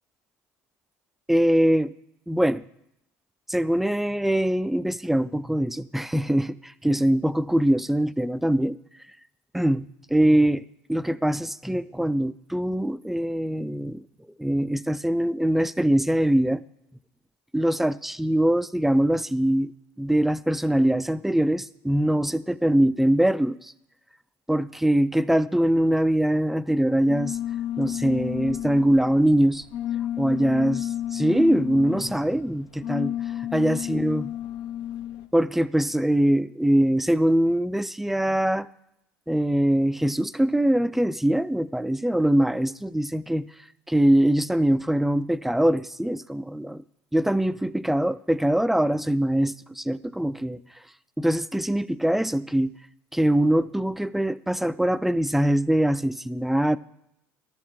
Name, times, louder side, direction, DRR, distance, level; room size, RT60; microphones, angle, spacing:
voice 1, 1.3-1.9 2.3-2.6 3.5-8.8 9.5-10.6 10.9-14.0 14.4-16.6 17.5-19.7 20.0-23.7 24.5-27.4 27.8-29.6 30.2-30.8 31.1-33.1 33.4-34.2 35.3-38.7 39.3-43.5 43.9-46.8 47.1-50.6 51.2-52.7 53.1-56.8, right 1 dB, 5° right, 16 dB, 0.3 m, -23 dB
sound 1, 27.1-35.3, left 11 dB, 70° left, 0.6 m, -32 dB
12.0 x 6.3 x 3.7 m, 0.80 s
hypercardioid pair, 70°, 8 cm